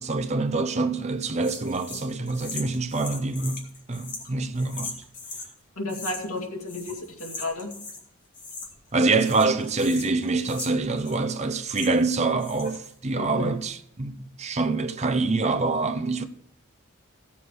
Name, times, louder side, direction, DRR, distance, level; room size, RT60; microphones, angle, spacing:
voice 1, 0.0-3.6 3.9-4.9 8.9-16.3, right 3 dB, 30° right, 0.7 m, -25 dB
sound 1, 1.4-5.5 5.9-6.4 6.6-8.0 8.3-8.9 9.2-12.1 12.4-12.9, left 3 dB, 40° left, 2.3 m, -40 dB
voice 2, 5.8-7.7 13.2-13.5, left 2 dB, 85° left, 2.3 m, -33 dB
16.0 x 7.0 x 4.6 m
head